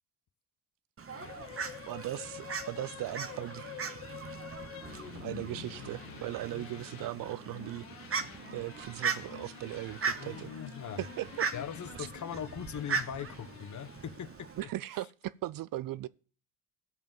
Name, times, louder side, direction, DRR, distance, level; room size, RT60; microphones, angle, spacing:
Fowl, 1.0-14.6, right 5 dB, 35° right, 1.0 m, -39 dB
sound 1, 1.1-14.7, left 12 dB, 85° left, 1.0 m, -48 dB
voice 1, 1.9-3.8 5.2-8.2 8.5-10.5 11.0-11.5 12.0-12.1 14.6-16.1, right 15 dB, 55° right, 0.5 m, -38 dB
voice 2, 10.2-11.0 11.5-14.7, left 8 dB, 45° left, 1.0 m, -40 dB
14.0 x 5.3 x 5.3 m
hypercardioid pair, 55°, 41 cm